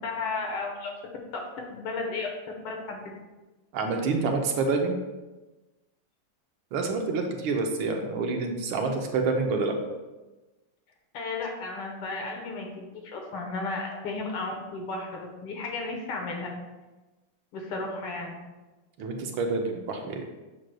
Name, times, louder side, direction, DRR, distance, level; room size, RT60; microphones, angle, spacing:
voice 1, 0.0-1.0 1.6-3.0 11.1-16.5 17.5-18.3, left 3 dB, 75° left, 1 dB, 2.0 m, -34 dB
voice 2, 3.7-4.9 6.7-9.8 19.0-20.3, right 4 dB, 75° right, 3 dB, 1.5 m, -27 dB
7.6 x 6.2 x 2.2 m, 1.1 s
omnidirectional pair, 2.4 m